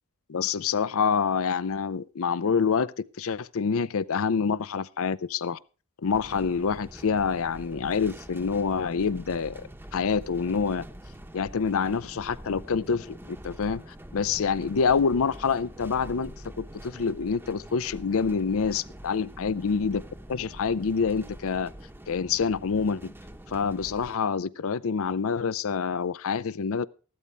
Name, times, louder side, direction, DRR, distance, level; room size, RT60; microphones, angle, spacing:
voice 1, 0.3-5.6 6.0-9.6 9.9-10.8 11.3-13.8 14.1-20.0 20.3-21.7 22.1-23.1 23.5-26.9, left 5 dB, 65° left, 0.5 m, -27 dB
sound 1, 6.1-24.2, right 1 dB, 10° right, 0.9 m, -45 dB
15.0 x 12.5 x 3.3 m
head